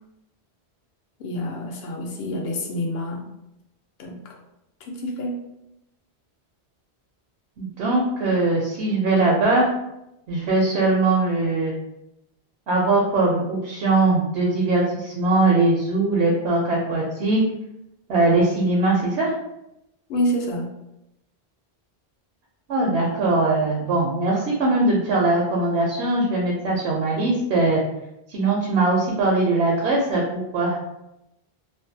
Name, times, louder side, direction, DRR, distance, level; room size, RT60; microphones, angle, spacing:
voice 1, 1.2-3.3 4.0-4.4 4.8-5.4 20.1-20.7, equal, 70° left, 0 dB, 0.8 m, -27 dB
voice 2, 7.6-9.7 10.3-11.7 12.7-17.4 18.1-19.3 22.7-27.8 28.3-30.8, right 2 dB, 85° right, -3 dB, 0.8 m, -21 dB
2.6 x 2.2 x 2.6 m, 0.86 s
omnidirectional pair, 1.1 m